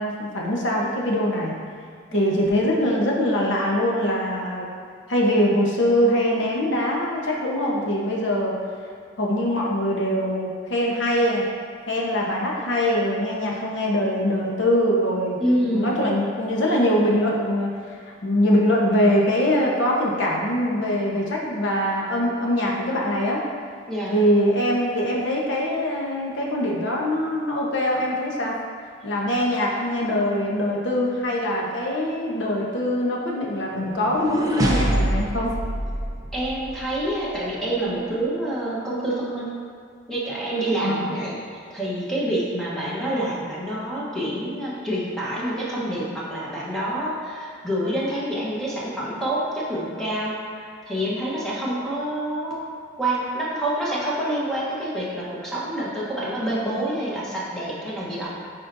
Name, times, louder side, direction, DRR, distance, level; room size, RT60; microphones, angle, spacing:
voice 1, 0.0-1.6 2.1-4.7 5.1-8.5 9.2-11.4 11.9-17.7 18.0-23.4 24.1-28.5 29.0-35.5 40.7-41.2, equal, 75° left, -2 dB, 1.1 m, -23 dB
voice 2, 15.4-16.0 23.9-24.1 36.3-39.5 40.1-52.7 53.0-58.3, right 1 dB, 5° left, -8 dB, 1.1 m, -27 dB
sound 1, 33.7-36.9, right 1 dB, 20° right, 0.5 m, -25 dB
9.6 x 4.3 x 2.7 m, 2.1 s
head